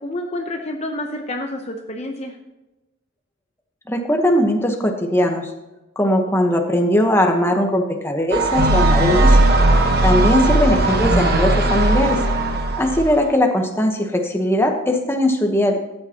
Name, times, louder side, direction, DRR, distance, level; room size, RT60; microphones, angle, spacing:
voice 1, 0.0-2.4 9.7-10.0, left 1 dB, 30° left, 3 dB, 0.7 m, -29 dB
voice 2, 3.9-5.5 6.0-9.4 10.0-12.2 12.8-15.8, left 1 dB, 10° left, 3 dB, 1.0 m, -19 dB
sound 1, 8.3-13.2, right 2 dB, 50° right, 1.0 m, -17 dB
sound 2, 8.8-12.8, left 3 dB, 85° left, 1.1 m, -34 dB
13.5 x 8.8 x 2.9 m, 1.0 s
head